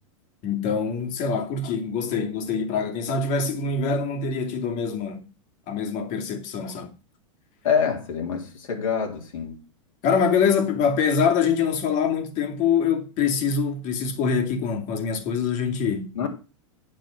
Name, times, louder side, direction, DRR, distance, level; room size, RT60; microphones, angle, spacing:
voice 1, 0.4-5.3 5.7-6.9 10.0-16.3, left 6 dB, 50° left, 2.7 m, -24 dB
voice 2, 7.6-9.6 16.1-16.3, left 7 dB, 80° left, 3.3 m, -26 dB
9.6 x 6.8 x 6.4 m
hypercardioid pair, 110°, 17 cm